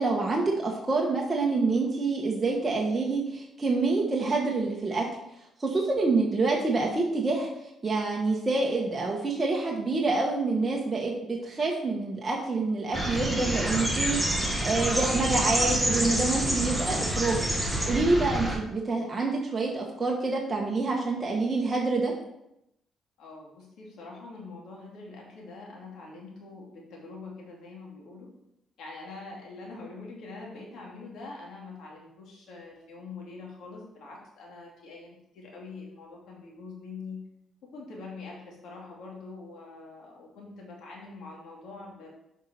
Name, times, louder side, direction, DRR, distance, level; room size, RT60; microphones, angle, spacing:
voice 1, 0.0-5.1 5.6-7.5 7.8-17.4 17.9-22.1, right 3 dB, 25° right, -2 dB, 1.4 m, -27 dB
sound 1, 12.9-18.6, right 1 dB, ahead, 1.7 m, -27 dB
voice 2, 23.2-28.3 28.8-37.2 37.6-42.1, left 3 dB, 75° left, -2 dB, 2.6 m, -44 dB
7.7 x 5.4 x 4.4 m, 0.82 s
cardioid pair, 90°, 0 cm